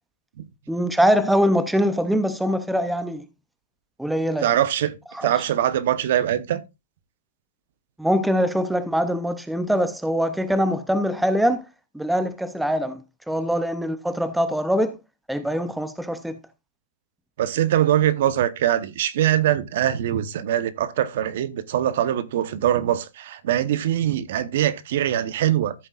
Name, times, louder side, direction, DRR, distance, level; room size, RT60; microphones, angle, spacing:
voice 1, 0.7-3.3 4.0-4.5 5.1-5.3 8.0-11.6 11.9-13.0 13.3-15.0 15.3-16.4, equal, ahead, 0.5 m, -23 dB
voice 2, 4.4-5.0 5.2-6.6 17.4-25.7, right 11 dB, 55° right, 0.9 m, -22 dB
13.5 x 7.6 x 2.4 m
hypercardioid pair, 165°, 0 cm